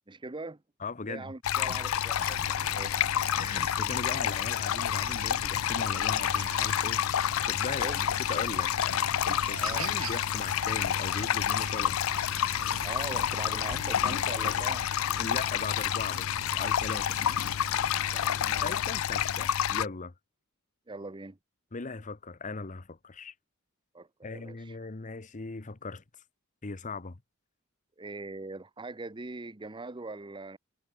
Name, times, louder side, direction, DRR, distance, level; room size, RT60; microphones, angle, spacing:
voice 1, 0.1-0.6 1.1-3.0 7.8-8.0 9.6-9.9 12.8-14.9 18.1-18.8 20.9-21.4 23.9-24.8 28.0-30.6, right 3 dB, 20° right, 0.8 m, -41 dB
voice 2, 0.8-1.3 1.6-1.8 2.2-2.3 3.4-12.0 15.2-16.3 16.5-17.2 18.3-20.1 21.7-23.3 24.2-26.0 26.6-27.2, left 3 dB, 35° left, 0.9 m, -39 dB
sound 1, 1.4-19.9, left 10 dB, 70° left, 0.4 m, -29 dB
sound 2, 2.2-2.4 2.9-3.2 3.5-3.6 3.9-4.0 4.3-4.4 8.6-8.7 9.1-9.5 9.9-10.0 10.4-11.3 11.6-11.8, right 7 dB, 40° right, 6.6 m, -54 dB
Chicken rooster, 2.3-18.2, right 4 dB, 75° right, 2.4 m, -45 dB
head